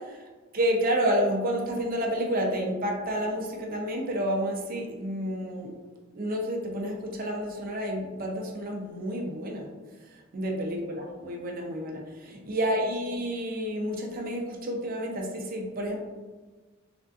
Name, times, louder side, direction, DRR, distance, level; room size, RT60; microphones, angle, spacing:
voice 1, 0.5-5.7 6.1-9.7 10.3-16.0, equal, 50° right, 0 dB, 0.6 m, -30 dB
3.6 x 2.5 x 2.4 m, 1.3 s
head